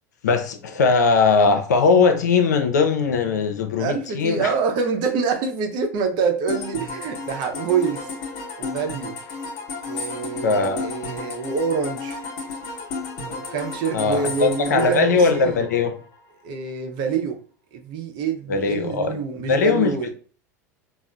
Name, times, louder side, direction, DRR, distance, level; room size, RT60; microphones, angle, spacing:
voice 1, 0.2-4.5 10.4-10.8 13.9-16.0 18.5-19.2 19.5-20.1, left 4 dB, 85° left, 0.5 m, -20 dB
voice 2, 3.8-8.1 8.6-9.1 9.9-12.2 13.3-15.6 16.4-17.4 17.7-20.1, right 5 dB, 55° right, 0.7 m, -26 dB
sound 1, 6.5-16.2, left 4 dB, 60° left, 0.9 m, -33 dB
3.9 x 2.0 x 2.3 m
hypercardioid pair, 90°, 9 cm